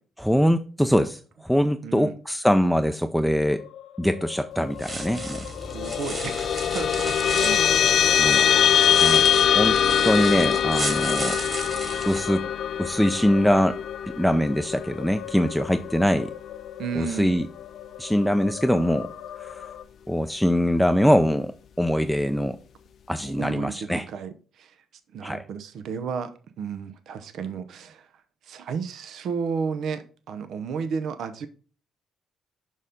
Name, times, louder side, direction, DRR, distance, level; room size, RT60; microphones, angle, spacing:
voice 1, 0.2-3.6 4.0-5.4 8.2-8.5 9.0-9.2 9.5-11.4 12.1-12.5 12.8-13.8 14.1-16.3 17.0-17.5 18.0-19.1 19.4-19.6 20.1-21.5 21.8-22.6 23.1-24.1 25.2-25.4, equal, ahead, 0.5 m, -23 dB
voice 2, 1.8-2.2 5.7-7.7 16.8-17.3 23.4-24.8 25.1-28.1 28.4-31.5, right 6 dB, 70° right, 0.8 m, -33 dB
sound 1, 3.5-19.8, left 11 dB, 85° left, 0.9 m, -40 dB
sound 2, 4.7-12.2, right 2 dB, 30° right, 2.3 m, -34 dB
sound 3, 5.6-16.3, left 9 dB, 60° left, 0.3 m, -23 dB
6.4 x 5.4 x 3.7 m
cardioid pair, 90°, 0 cm